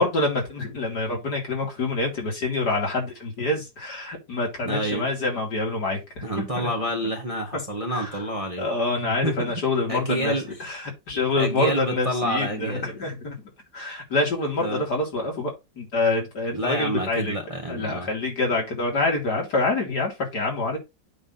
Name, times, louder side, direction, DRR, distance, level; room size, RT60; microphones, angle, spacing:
voice 1, 0.0-6.7 7.9-8.2 8.6-10.3 10.6-13.3 13.7-15.5 15.8-17.4 17.7-20.8, left 2 dB, 65° left, 3.2 m, -26 dB
voice 2, 4.6-5.1 6.2-8.7 9.0-9.5 9.9-10.5 11.4-12.8 14.6-14.9 16.5-18.1, right 1 dB, 20° right, 1.5 m, -28 dB
8.7 x 3.3 x 5.5 m
omnidirectional pair, 1.9 m